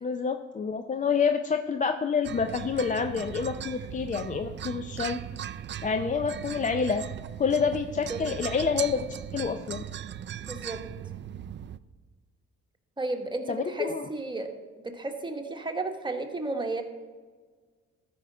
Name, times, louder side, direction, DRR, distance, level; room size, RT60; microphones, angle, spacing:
voice 1, 0.0-5.2 5.8-7.0 7.4-9.8 13.5-14.1, left 5 dB, 25° left, 7 dB, 0.5 m, -28 dB
sound 1, 2.2-11.8, right 10 dB, 40° right, 0.4 m, -38 dB
voice 2, 10.5-10.8 13.0-14.5 14.8-16.8, right 2 dB, 15° right, 4 dB, 1.2 m, -33 dB
13.5 x 5.1 x 5.4 m, 1.5 s
cardioid pair, 90°, 30 cm